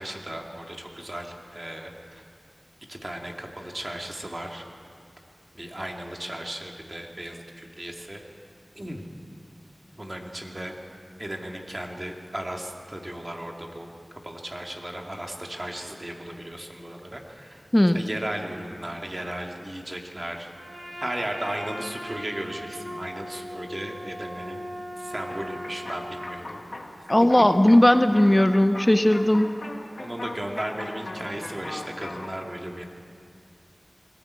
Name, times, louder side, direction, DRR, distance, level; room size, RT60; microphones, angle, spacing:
voice 1, 0.0-2.2 2.9-4.6 5.5-8.2 8.7-9.0 10.0-10.7 11.2-13.9 14.2-17.7 17.9-20.5 21.0-24.7 25.0-26.6 30.0-32.8, right 1 dB, 35° right, 1 dB, 2.4 m, -35 dB
Trumpet, 20.5-26.3, equal, 80° right, 6.8 m, -38 dB
sound 1, 25.3-32.3, left 2 dB, 65° left, 1.6 m, -39 dB
voice 2, 27.1-29.5, left 1 dB, 20° left, 9 dB, 0.7 m, -18 dB
21.0 x 14.5 x 8.5 m, 2.3 s
wide cardioid pair, 45°, 0 cm